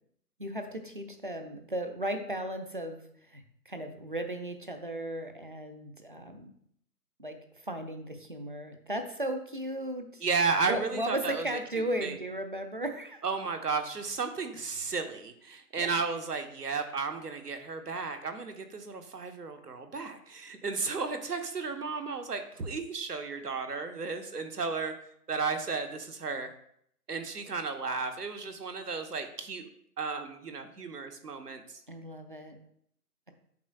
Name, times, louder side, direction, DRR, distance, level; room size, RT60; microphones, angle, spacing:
voice 1, 0.4-3.0 3.3-6.5 7.2-10.2 10.7-13.2 15.8-15.9 31.9-32.6, right 1 dB, 35° right, 6 dB, 0.6 m, -36 dB
voice 2, 10.2-11.6 12.0-12.2 13.2-24.9 25.3-26.5 27.1-29.7 30.0-31.8, right 4 dB, 75° right, 6 dB, 1.3 m, -33 dB
8.3 x 5.9 x 2.4 m, 0.68 s
figure-of-eight pair, 165°, 47 cm